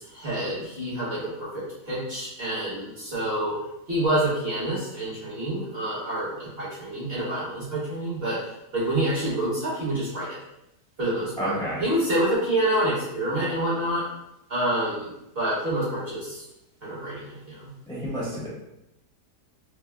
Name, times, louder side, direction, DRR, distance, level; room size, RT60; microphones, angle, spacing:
voice 1, 0.1-3.5 3.9-8.4 8.7-10.4 11.0-14.0 14.5-16.4 16.8-17.7, right 1 dB, 40° right, -7 dB, 1.1 m, -27 dB
voice 2, 11.4-11.8 17.9-18.5, right 1 dB, 5° left, -9 dB, 0.6 m, -30 dB
5.1 x 2.1 x 2.2 m, 0.86 s
omnidirectional pair, 1.8 m